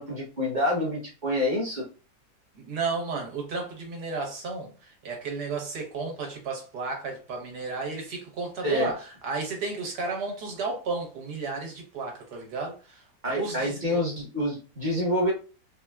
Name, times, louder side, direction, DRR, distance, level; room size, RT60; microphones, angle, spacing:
voice 1, 0.0-1.8 8.6-8.9 13.2-15.3, left 1 dB, 35° right, 0.8 m, -27 dB
voice 2, 2.5-13.0 13.3-14.0, right 4 dB, 70° right, 1.5 m, -33 dB
4.1 x 2.2 x 2.3 m
omnidirectional pair, 1.9 m